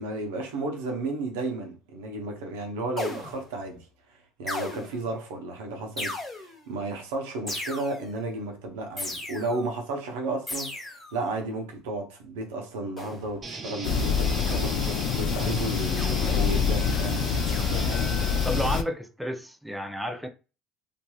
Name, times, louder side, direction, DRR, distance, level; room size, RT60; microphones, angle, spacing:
voice 1, 0.0-3.9 4.4-17.2, right 2 dB, 90° right, 0.7 m, -33 dB
sound 1, 3.0-3.6 4.5-5.1 6.0-6.7 7.5-8.2 9.0-9.7 10.5-11.2 13.0-13.4 14.5-14.9 16.0-16.4 17.5-18.0, left 2 dB, 15° left, 1.3 m, -37 dB
sound 2, 13.4-18.8, right 3 dB, 30° right, 0.8 m, -37 dB
sound 3, 13.8-18.8, left 6 dB, 65° left, 0.3 m, -26 dB
voice 2, 18.4-20.3, equal, ahead, 0.5 m, -31 dB
2.8 x 2.5 x 2.3 m
supercardioid pair, 100°, 0 cm